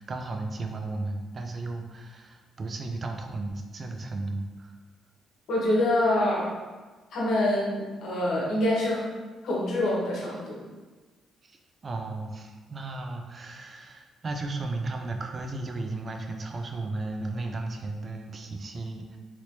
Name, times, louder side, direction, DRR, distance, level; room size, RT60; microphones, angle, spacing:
voice 1, 0.0-4.7 11.4-11.6 11.8-19.2, right 2 dB, 40° right, 4 dB, 0.4 m, -34 dB
voice 2, 5.5-6.5 7.1-9.1 9.4-10.6, left 1 dB, 70° left, -5 dB, 1.1 m, -25 dB
3.0 x 3.0 x 2.8 m, 1.3 s
cardioid pair, 90°, 0 cm